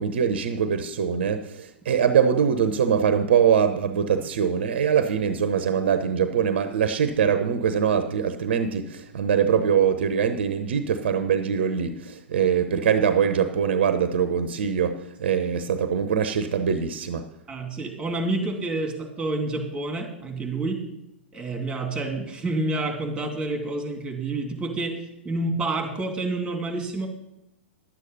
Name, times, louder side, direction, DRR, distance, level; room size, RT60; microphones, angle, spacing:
voice 1, 0.0-17.3, right 7 dB, 60° right, 0.8 m, -23 dB
voice 2, 17.5-20.8 21.3-25.0 25.2-27.1, right 2 dB, 15° right, 2.7 m, -28 dB
11.5 x 8.3 x 5.4 m
figure-of-eight pair, 105°, 6 cm